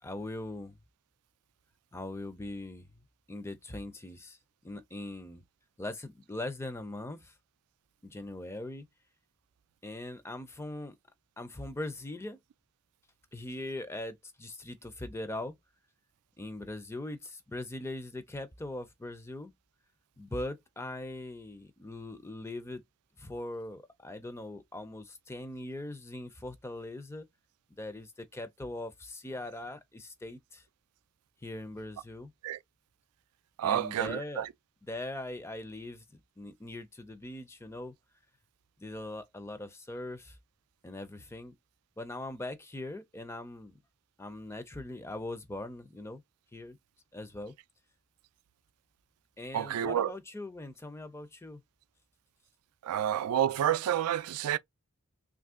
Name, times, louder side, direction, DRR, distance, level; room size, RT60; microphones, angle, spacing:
voice 1, 0.0-0.8 1.9-2.9 3.3-4.4 4.6-5.4 5.8-7.3 8.0-8.9 9.8-11.0 11.4-12.4 13.3-15.5 16.4-19.5 20.2-22.8 23.2-27.3 27.7-30.6 31.4-32.3 33.6-34.5 34.8-37.9 38.8-40.4 40.8-41.5 42.0-43.8 44.2-46.2 46.5-46.8 47.1-47.5 49.4-51.6, left 1 dB, 10° left, 0.4 m, -41 dB
voice 2, 33.6-34.5 49.5-50.2 52.8-54.6, right 10 dB, 85° right, 0.3 m, -29 dB
3.1 x 2.5 x 3.5 m
head